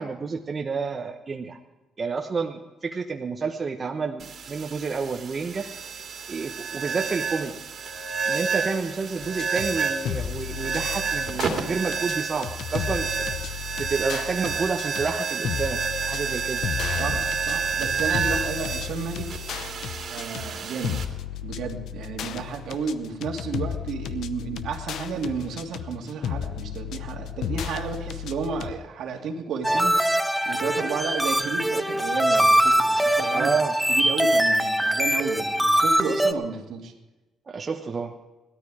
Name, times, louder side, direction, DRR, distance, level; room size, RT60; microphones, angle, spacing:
voice 1, 0.0-1.6 2.0-5.7 6.3-7.6 8.3-13.1 13.8-15.8 16.1-16.6 33.3-33.7 37.5-38.1, right 4 dB, 40° right, 3 dB, 1.0 m, -29 dB
sound 1, 4.2-21.0, right 5 dB, 55° right, 2.4 m, -30 dB
sound 2, 9.2-28.7, left 9 dB, 75° left, 0.8 m, -34 dB
voice 2, 17.0-19.3 20.1-21.0 21.4-33.5 33.9-36.9, right 5 dB, 75° right, 1 dB, 2.4 m, -32 dB
sound 3, 29.6-36.3, right 1 dB, 5° right, 0.8 m, -22 dB
17.5 x 13.0 x 4.9 m, 1.1 s
cardioid pair, 90°, 0 cm